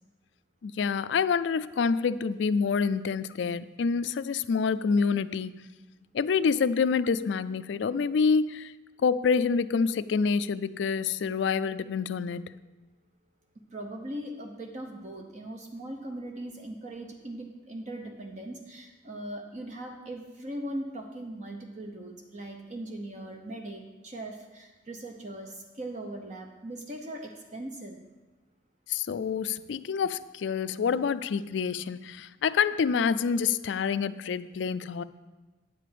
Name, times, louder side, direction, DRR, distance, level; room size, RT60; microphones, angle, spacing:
voice 1, 0.6-5.6 6.1-8.7 9.0-12.5 28.9-35.0, left 5 dB, 80° left, 14 dB, 0.4 m, -27 dB
voice 2, 13.7-28.0, right 1 dB, 40° right, 3 dB, 0.8 m, -39 dB
9.3 x 5.0 x 7.6 m, 1.2 s
head